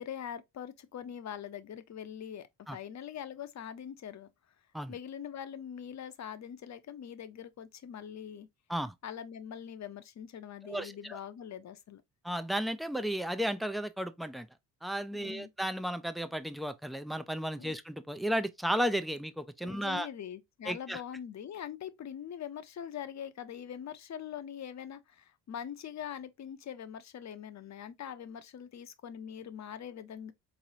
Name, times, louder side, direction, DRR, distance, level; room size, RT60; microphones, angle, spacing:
voice 1, 0.0-4.3 4.9-8.5 9.0-12.0 15.1-15.5 17.5-17.7 19.6-30.3, left 9 dB, 35° left, 0.6 m, -43 dB
voice 2, 10.7-11.2 12.2-14.5 14.8-20.1 20.7-21.0, equal, ahead, 0.3 m, -34 dB
3.8 x 3.1 x 2.7 m
supercardioid pair, 70°, 46 cm